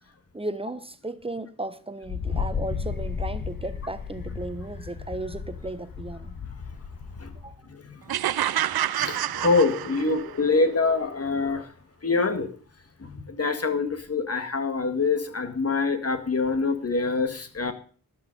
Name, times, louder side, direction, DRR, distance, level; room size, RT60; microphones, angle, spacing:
voice 1, 0.3-6.4 7.4-7.5, right 2 dB, 15° right, 1.1 m, -35 dB
Wind, 2.0-7.6, left 5 dB, 70° left, 2.0 m, -33 dB
sound 1, 8.1-10.4, right 12 dB, 90° right, 0.5 m, -28 dB
voice 2, 9.0-11.7 12.0-12.5 13.0-17.7, left 4 dB, 40° left, 1.9 m, -25 dB
13.0 x 10.5 x 5.4 m
wide cardioid pair, 105°, 36 cm